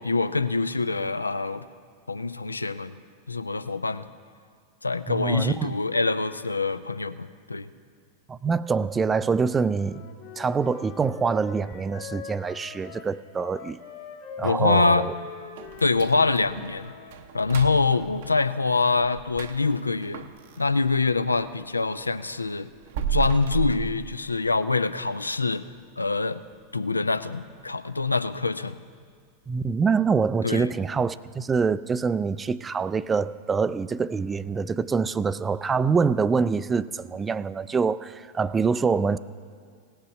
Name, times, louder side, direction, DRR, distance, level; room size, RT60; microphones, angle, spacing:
voice 1, 0.0-1.6 2.1-3.0 3.3-4.1 4.8-7.7 14.4-15.1 15.8-16.9 17.3-20.3 20.6-22.7 23.1-25.6 26.0-26.4 26.7-28.8 30.4-30.7, left 3 dB, 80° left, 13 dB, 0.4 m, -25 dB
voice 2, 5.1-5.7 8.3-10.0 10.4-13.8 14.4-15.1 29.5-39.2, right 5 dB, 15° right, 16 dB, 0.3 m, -25 dB
Wind instrument woodwind instrument, 9.7-17.2, left 6 dB, 50° left, 1.6 m, -43 dB
sound 1, 15.6-21.5 21.9-24.7 25.1-25.2 25.7-25.8 26.3-26.6 26.9-27.0 27.6-27.7, right 7 dB, 55° right, 0.6 m, -35 dB
17.5 x 6.6 x 5.7 m, 2.1 s
figure-of-eight pair, 90°, 0 cm